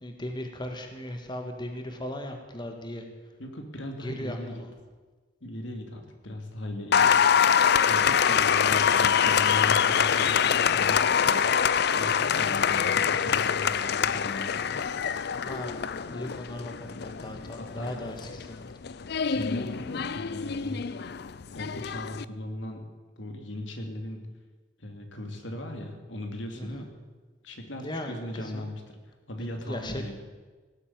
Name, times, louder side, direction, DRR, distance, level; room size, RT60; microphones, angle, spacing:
voice 1, 0.0-3.1 4.0-4.7 15.5-18.2 18.5-18.6 26.6-26.8 27.8-28.1 28.5-28.7 29.7-30.2, left 1 dB, 25° left, 4 dB, 1.7 m, -37 dB
voice 2, 3.4-4.6 5.4-7.1 7.8-14.8 17.6-18.0 19.2-20.9 21.5-22.8 23.2-24.2 24.8-26.9 27.4-29.0 29.3-30.2, left 1 dB, 85° left, 4 dB, 2.5 m, -38 dB
Applause, 6.9-22.2, left 7 dB, 60° left, 0.5 m, -25 dB
17.5 x 8.3 x 9.6 m, 1.3 s
head